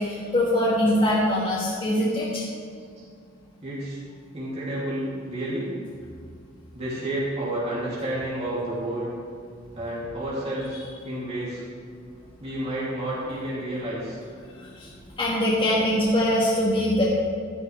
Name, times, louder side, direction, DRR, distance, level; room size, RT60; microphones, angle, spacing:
voice 1, 0.0-2.4 14.6-14.9 15.2-17.0, left 1 dB, 25° left, -7 dB, 1.7 m, -23 dB
voice 2, 3.6-4.0 4.3-5.7 6.7-9.1 9.7-10.8 11.0-11.6 12.4-14.2, right 1 dB, 30° right, -9 dB, 2.8 m, -30 dB
13.0 x 11.0 x 3.3 m, 2.1 s
head